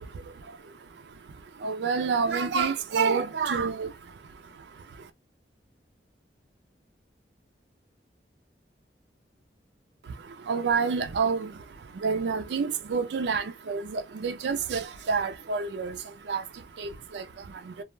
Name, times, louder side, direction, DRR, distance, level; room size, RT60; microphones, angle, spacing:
voice 1, 1.6-3.9 10.5-11.5 12.0-15.9 16.3-16.4 16.8-17.2, right 5 dB, 80° right, 0.4 m, -28 dB
2.3 x 2.1 x 3.1 m
head